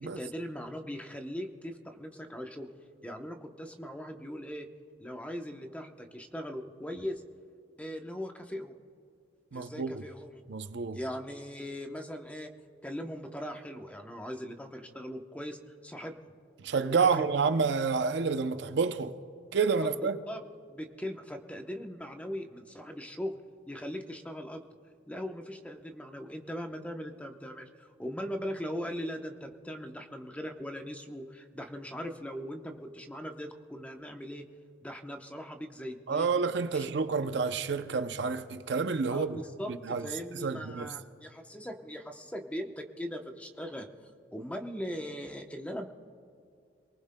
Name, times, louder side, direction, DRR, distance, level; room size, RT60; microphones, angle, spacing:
voice 1, 0.0-2.7 3.0-4.7 5.0-7.2 7.8-8.7 9.5-10.4 10.9-12.5 12.8-16.1 16.9-17.2 19.8-20.4 20.7-23.4 23.7-24.7 25.1-34.4 34.8-36.4 36.7-36.9 39.1-43.9 44.3-45.9, equal, 5° left, 0.8 m, -40 dB
voice 2, 9.5-10.0 10.5-11.0 16.6-19.2 19.5-20.2 36.1-39.4 39.8-40.1 40.3-40.9, right 5 dB, 65° right, 0.6 m, -29 dB
27.0 x 19.5 x 2.2 m
head